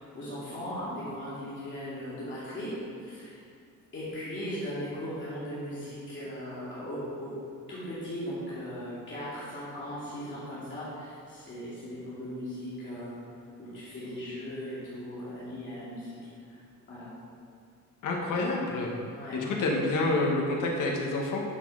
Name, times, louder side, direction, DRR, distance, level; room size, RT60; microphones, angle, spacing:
voice 1, 0.0-3.4 3.9-7.4 7.7-13.2 13.6-16.1 16.5-16.6 16.9-17.1 19.1-19.4, equal, 35° left, -10 dB, 2.8 m, -38 dB
voice 2, 18.0-18.9 19.3-21.4, left 2 dB, 70° left, -1 dB, 1.9 m, -28 dB
12.0 x 6.6 x 5.0 m, 2.4 s
cardioid pair, 180°, 32 cm